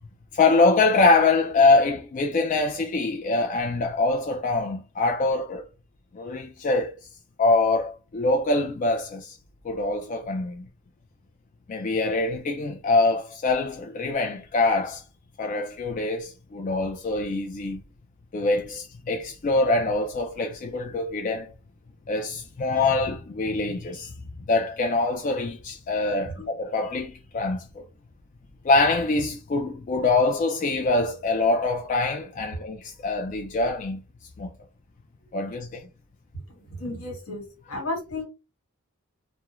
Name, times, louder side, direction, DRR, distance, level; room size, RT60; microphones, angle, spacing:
voice 1, 0.3-5.6 6.1-7.0 7.4-9.4 9.6-10.7 11.7-15.0 15.4-17.8 18.3-21.5 22.1-24.1 24.5-27.8 28.6-34.0 34.4-34.5 35.3-35.8, left 3 dB, 35° left, 0.3 m, -24 dB
voice 2, 36.3-38.2, left 1 dB, 80° left, 1.3 m, -34 dB
2.3 x 2.1 x 3.0 m
head